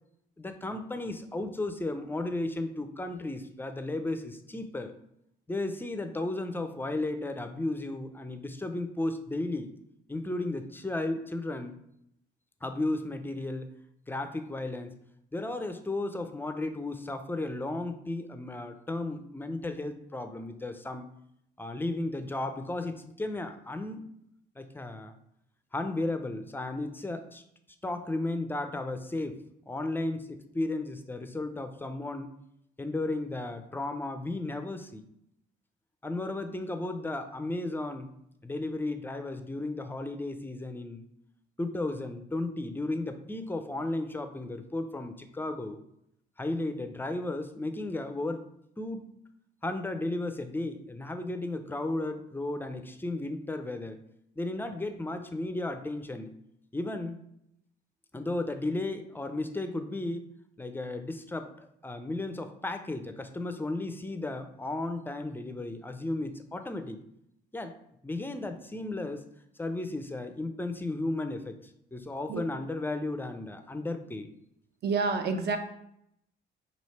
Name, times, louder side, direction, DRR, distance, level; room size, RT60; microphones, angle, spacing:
voice 1, 0.4-4.9 5.5-9.7 10.1-11.8 12.6-13.7 14.1-15.0 15.3-21.0 21.6-24.0 24.6-25.1 25.7-27.4 27.8-29.4 29.7-32.3 32.8-35.0 36.0-38.1 38.4-41.1 41.6-45.8 46.4-48.4 48.8-49.0 49.6-54.0 54.4-56.3 56.7-57.2 58.1-60.3 60.6-67.0 67.5-67.8 68.0-69.2 69.6-71.6 71.9-74.3, left 2 dB, 10° left, 8 dB, 0.4 m, -34 dB
voice 2, 74.8-75.6, right 4 dB, 55° right, 7 dB, 0.6 m, -28 dB
3.1 x 2.8 x 4.2 m, 0.75 s
cardioid pair, 90°, 20 cm